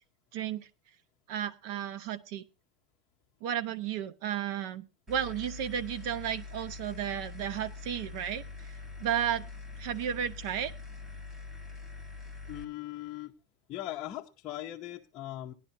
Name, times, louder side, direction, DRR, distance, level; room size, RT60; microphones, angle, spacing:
voice 1, 0.3-0.7 1.3-2.4 3.4-8.7 9.0-9.5 9.8-10.7, right 9 dB, 45° right, 14 dB, 0.9 m, -33 dB
sound 1, 5.1-12.6, left 4 dB, 10° right, 1.2 m, -44 dB
voice 2, 12.5-13.3 13.7-15.5, left 14 dB, 25° left, -2 dB, 0.7 m, -39 dB
18.5 x 11.0 x 2.7 m, 0.28 s
supercardioid pair, 175°, 3 cm